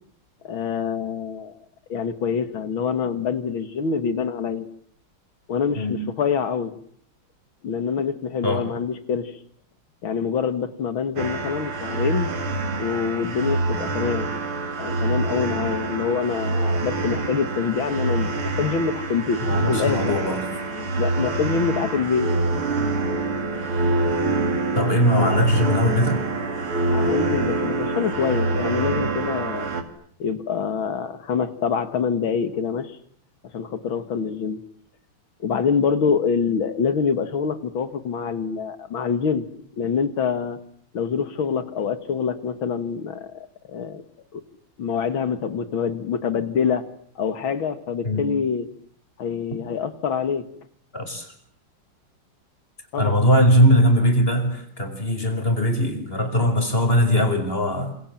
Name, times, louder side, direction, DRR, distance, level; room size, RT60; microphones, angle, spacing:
voice 1, 0.4-1.6 1.9-4.7 5.5-6.8 7.6-9.3 10.0-12.3 12.8-14.3 14.8-20.2 20.5-22.3 23.0-23.1 26.9-29.7 30.2-32.9 33.4-34.6 35.4-39.4 39.8-40.6 40.9-44.0 44.3-44.4 44.8-46.9 47.2-48.7 49.2-50.5 52.9-53.2, left 6 dB, 70° left, 11 dB, 2.6 m, -25 dB
sound 1, 11.2-29.8, right 2 dB, 90° right, 3.3 m, -25 dB
voice 2, 19.5-20.4 24.7-26.2 48.0-48.2 50.9-51.3 53.0-57.9, equal, 25° left, 7 dB, 5.7 m, -20 dB
28.0 x 27.5 x 7.6 m, 0.62 s
omnidirectional pair, 2.3 m